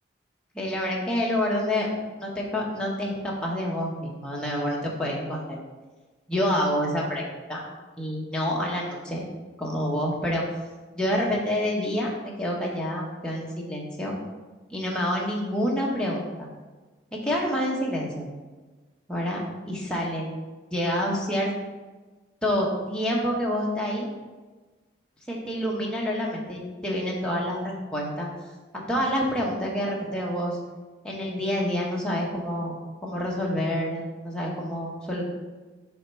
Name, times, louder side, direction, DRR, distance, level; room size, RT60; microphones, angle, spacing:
voice 1, 0.5-1.9 2.2-5.6 6.3-7.2 7.5-7.6 8.0-9.3 9.6-10.4 10.9-12.1 12.4-14.2 14.7-16.5 17.2-18.3 19.1-19.4 19.7-20.3 20.7-21.5 22.4-24.1 25.3-28.3 28.7-30.6 31.0-32.8 33.0-35.2, equal, 5° left, -4 dB, 1.0 m, -27 dB
7.2 x 3.5 x 4.4 m, 1.3 s
head